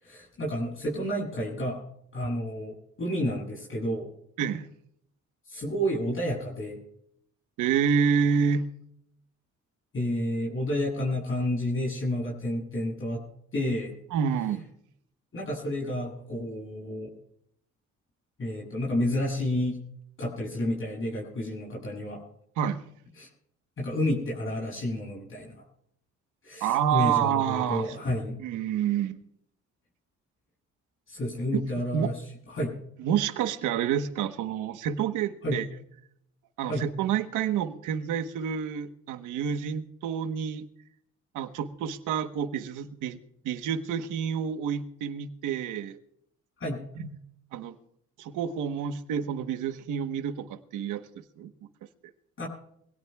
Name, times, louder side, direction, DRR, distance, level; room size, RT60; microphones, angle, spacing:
voice 1, 0.0-1.8 2.1-2.7 3.0-4.1 5.4-6.8 9.9-13.2 13.5-13.9 15.3-17.1 18.4-19.8 20.2-22.2 23.2-23.3 23.8-25.6 26.4-28.4 31.1-32.2 32.5-32.8 35.4-35.6 36.6-36.9 46.6-46.8 52.4-52.5, left 1 dB, 45° left, -3 dB, 7.9 m, -30 dB
voice 2, 7.6-8.7 14.1-14.7 22.6-22.8 26.6-28.0 28.4-29.2 31.5-31.6 31.9-32.1 33.0-35.7 36.6-40.6 41.3-43.2 43.4-46.0 47.0-47.1 47.5-47.7 48.2-51.5, right 8 dB, 90° right, 8 dB, 1.2 m, -28 dB
25.0 x 17.5 x 2.4 m, 0.70 s
cardioid pair, 90°, 30 cm